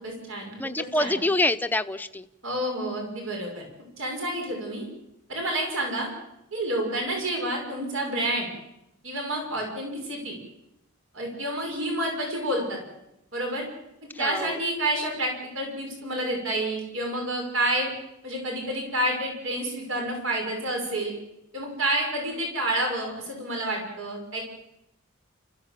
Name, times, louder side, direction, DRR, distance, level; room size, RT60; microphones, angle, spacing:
voice 1, 0.0-1.2 2.4-3.7 4.0-4.8 5.3-6.1 6.5-8.5 9.0-10.3 11.1-12.8 13.3-13.7 14.2-17.9 18.2-21.1 21.5-24.4, right 1 dB, 75° right, 1 dB, 6.2 m, -29 dB
voice 2, 0.6-2.3 14.2-14.6, left 1 dB, 10° left, 9 dB, 0.7 m, -26 dB
29.5 x 15.0 x 7.6 m, 0.85 s
head